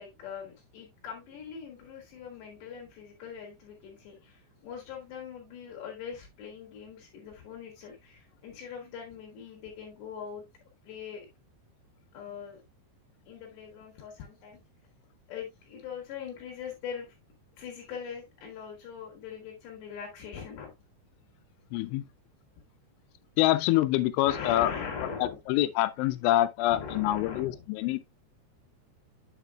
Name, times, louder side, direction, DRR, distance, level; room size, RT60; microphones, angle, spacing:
voice 1, 0.0-10.4 10.8-11.3 12.1-12.6 13.3-14.6 15.3-17.2 17.6-20.7 24.3-25.4 26.7-27.6, left 7 dB, 70° left, 3.6 m, -41 dB
voice 2, 21.7-22.1 23.4-24.7 25.2-28.0, left 15 dB, 85° left, 2.9 m, -26 dB
8.8 x 6.8 x 2.3 m
omnidirectional pair, 5.5 m